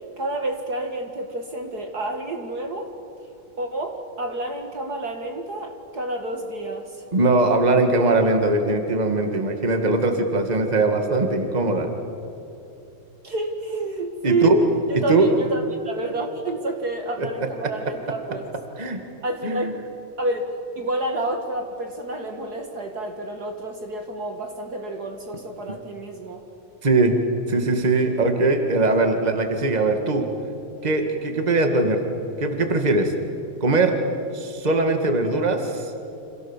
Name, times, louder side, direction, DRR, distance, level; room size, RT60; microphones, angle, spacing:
voice 1, 0.2-2.9 3.6-7.0 13.2-14.6 14.9-18.4 19.2-19.8 20.2-26.4 28.1-28.2, right 2 dB, 50° right, 4 dB, 2.3 m, -29 dB
voice 2, 7.1-11.9 14.2-14.6 14.9-15.3 17.2-17.3 18.8-19.0 19.4-19.7 26.8-27.2 27.5-30.2 30.8-32.0 32.4-33.1 33.6-34.0 34.3-35.9, right 2 dB, 20° right, 5 dB, 2.0 m, -21 dB
29.0 x 27.0 x 7.4 m, 2.8 s
omnidirectional pair, 2.3 m